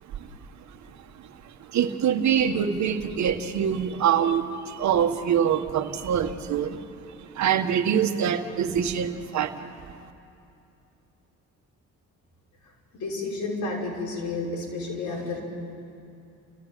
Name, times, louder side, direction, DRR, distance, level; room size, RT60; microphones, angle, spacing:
voice 1, 1.6-6.8 7.2-9.6, right 8 dB, 70° right, 7 dB, 1.6 m, -24 dB
voice 2, 12.9-15.4, left 3 dB, 70° left, -2 dB, 5.9 m, -31 dB
30.0 x 14.5 x 9.2 m, 2.7 s
cardioid pair, 90°, 30 cm